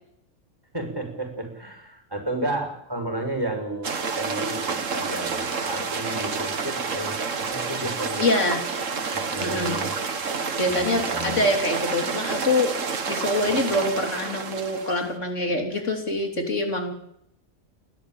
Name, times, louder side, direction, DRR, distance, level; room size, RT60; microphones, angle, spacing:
voice 1, 0.7-8.2 9.1-9.9 10.7-10.8 11.1-11.4, right 1 dB, 20° right, 2 dB, 6.2 m, -32 dB
sound 1, 3.8-15.1, right 5 dB, 85° right, 2.0 m, -29 dB
voice 2, 8.2-8.6 9.4-9.8 10.6-12.7 13.1-16.9, left 2 dB, 70° left, 4 dB, 3.6 m, -25 dB
30.0 x 13.0 x 9.1 m, 0.76 s
omnidirectional pair, 1.3 m